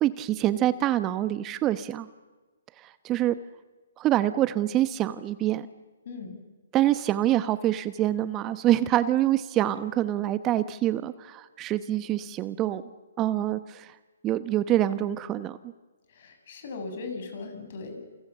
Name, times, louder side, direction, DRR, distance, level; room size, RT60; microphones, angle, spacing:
voice 1, 0.0-2.1 2.8-3.4 4.0-5.7 6.7-12.8 13.2-14.0 14.2-15.6, right 13 dB, 20° right, 13 dB, 0.9 m, -25 dB
voice 2, 6.1-6.4 16.1-18.0, left 3 dB, 50° left, 6 dB, 7.4 m, -38 dB
28.5 x 28.5 x 7.3 m, 1.3 s
hypercardioid pair, 135°, 0 cm